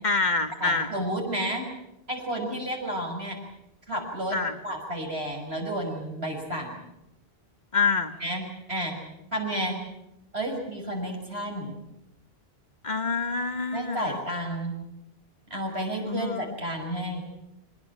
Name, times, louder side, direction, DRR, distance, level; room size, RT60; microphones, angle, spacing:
voice 1, 0.0-1.0 4.3-4.6 7.7-8.2 12.8-14.2 16.0-16.5, left 4 dB, 45° left, 8 dB, 1.6 m, -27 dB
voice 2, 0.6-1.7 2.1-3.4 3.9-4.4 4.6-6.8 8.2-9.0 9.3-9.8 10.3-11.8 13.7-14.8 15.5-17.2, right 1 dB, 75° right, 1 dB, 6.4 m, -31 dB
24.0 x 20.0 x 8.8 m, 0.88 s
omnidirectional pair, 1.1 m